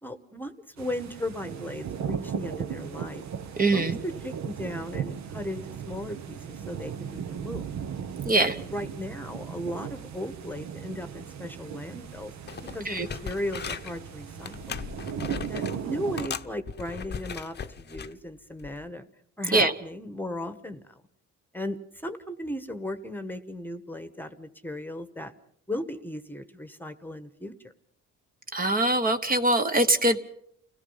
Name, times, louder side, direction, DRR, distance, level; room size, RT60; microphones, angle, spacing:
voice 1, 0.0-3.2 3.7-7.7 8.6-12.3 12.7-14.8 15.5-19.1 19.4-20.8 21.5-25.3 25.7-27.7, left 1 dB, 5° left, 9 dB, 1.3 m, -36 dB
sound 1, 0.8-16.3, right 8 dB, 60° right, 1.3 m, -37 dB
voice 2, 3.6-4.0 8.2-8.6 12.8-13.1 19.5-19.7 28.5-30.2, right 2 dB, 30° right, 7 dB, 1.2 m, -23 dB
sound 2, 12.1-12.2 12.5-14.0 14.4-15.8 16.2-18.1 18.6-18.8, left 7 dB, 35° left, 0.9 m, -38 dB
29.0 x 17.0 x 5.7 m, 0.69 s
cardioid pair, 120°, 31 cm